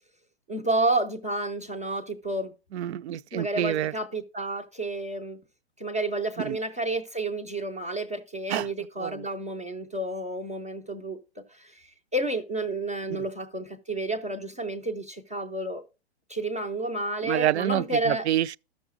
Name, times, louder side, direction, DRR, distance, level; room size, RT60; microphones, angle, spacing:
voice 1, 0.5-2.5 3.3-5.4 5.8-11.2 11.5-15.8 16.3-18.3, right 2 dB, 10° right, 0.3 m, -30 dB
voice 2, 2.7-3.9 6.4-6.6 8.5-8.7 9.0-9.2 13.1-13.3 17.2-18.6, right 12 dB, 75° right, 0.5 m, -28 dB
14.0 x 6.2 x 2.4 m
hypercardioid pair, 170°, 33 cm